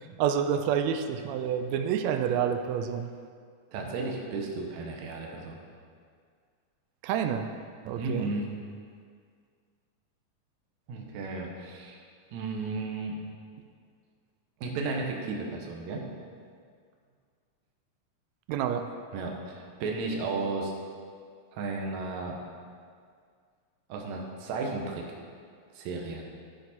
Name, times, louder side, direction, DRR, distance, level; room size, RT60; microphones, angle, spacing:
voice 1, 0.2-3.1 7.0-7.5 7.8-8.3 18.5-18.9, right 8 dB, 85° right, 7 dB, 1.6 m, -28 dB
voice 2, 3.7-5.6 8.0-8.5 10.9-12.0 12.3-13.2 14.6-16.0 19.1-20.7 21.5-22.4 23.9-25.0 25.7-26.2, right 3 dB, 70° right, 0 dB, 2.2 m, -34 dB
13.0 x 5.9 x 4.2 m, 2.1 s
omnidirectional pair, 3.7 m